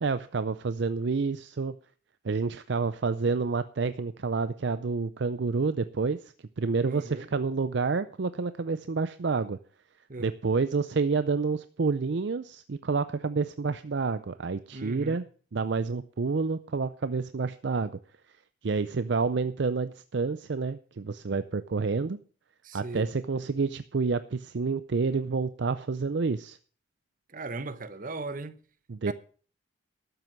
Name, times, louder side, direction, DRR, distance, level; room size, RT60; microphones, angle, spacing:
voice 1, 0.0-1.8 2.2-9.6 10.2-15.2 15.5-18.0 18.6-22.2 22.7-26.6 28.9-29.1, right 4 dB, 55° right, 0.5 m, -29 dB
voice 2, 6.8-7.3 10.1-10.3 14.7-15.2 22.6-23.1 27.3-28.6 29.1-29.2, right 2 dB, 40° right, 0.9 m, -37 dB
12.5 x 7.7 x 6.4 m
head